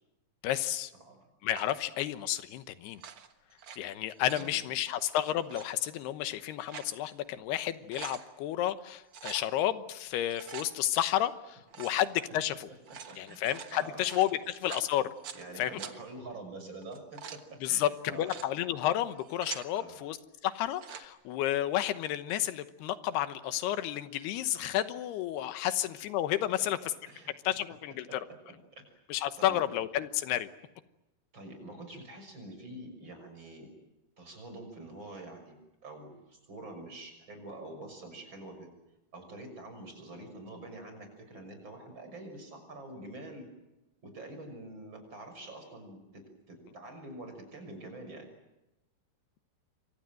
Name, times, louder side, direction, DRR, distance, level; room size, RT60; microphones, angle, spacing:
voice 1, 0.4-0.9 1.4-3.0 3.8-12.7 13.2-15.1 15.6-15.8 17.6-20.2 20.4-26.8 27.4-28.2 29.1-30.5, left 12 dB, 90° left, 11 dB, 3.1 m, -31 dB
sound 1, 1.5-1.9 2.9-3.8 4.1-4.5 5.4-5.7 6.4-7.0 7.4-7.5 7.7-8.3 9.1-9.5 10.1-10.7 11.7-12.0 12.7-15.4 15.8-15.9 16.8-17.4 18.1-18.5 19.1-19.7 20.6-21.1, right 7 dB, 55° right, 1.5 m, -45 dB
voice 2, 13.1-13.4 13.7-14.1 15.3-17.4 17.7-18.3 19.7-20.0 27.1-27.3 28.1-28.3 28.8-28.9 29.4-29.6 31.3-33.7 34.2-38.7 39.1-43.5 44.0-46.0 46.5-48.3, right 2 dB, 30° right, 5 dB, 6.7 m, -46 dB
28.5 x 24.0 x 7.8 m, 0.96 s
omnidirectional pair, 4.5 m